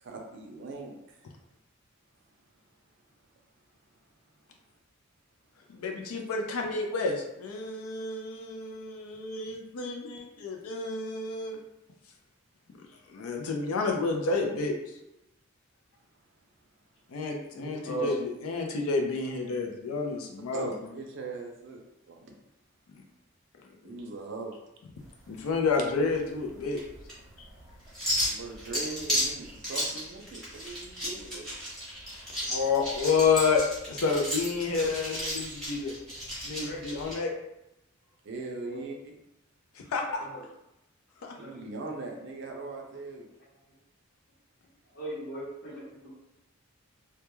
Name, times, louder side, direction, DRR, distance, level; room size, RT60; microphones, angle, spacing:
voice 1, 0.0-1.3 20.5-21.8 22.1-22.4 23.8-24.5 28.2-31.5 38.2-39.1 41.4-43.3, right 3 dB, 55° right, 1 dB, 0.4 m, -40 dB
voice 2, 5.7-11.6 13.1-14.8 17.1-20.9 22.9-23.0 23.8-24.0 25.3-26.8 27.4-27.5 32.5-35.9 36.4-37.4 39.7-40.3 41.2-41.3, left 4 dB, 80° left, 2 dB, 0.4 m, -30 dB
voice 3, 17.5-18.1 36.6-36.8 38.7-38.9 40.2-40.4 41.3-41.6 44.9-46.1, right 2 dB, 55° left, -6 dB, 0.9 m, -38 dB
sound 1, 25.0-37.2, equal, ahead, 0.7 m, -34 dB
2.2 x 2.2 x 2.9 m, 0.89 s
head